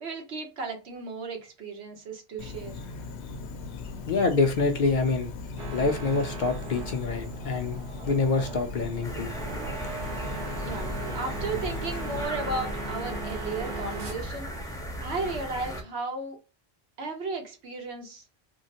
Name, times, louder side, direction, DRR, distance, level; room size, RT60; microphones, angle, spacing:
voice 1, 0.0-2.8 10.6-14.5 15.0-16.4 17.0-18.2, right 3 dB, 90° right, 1.2 m, -34 dB
Insect, 2.4-12.3, left 4 dB, 85° left, 0.9 m, -39 dB
voice 2, 4.1-5.3 5.7-9.3, left 3 dB, 55° left, 0.6 m, -26 dB
sound 1, 5.6-14.1, right 2 dB, 55° right, 0.8 m, -38 dB
sound 2, 9.0-15.8, equal, 5° left, 0.7 m, -37 dB
3.6 x 2.0 x 2.8 m
omnidirectional pair, 1.1 m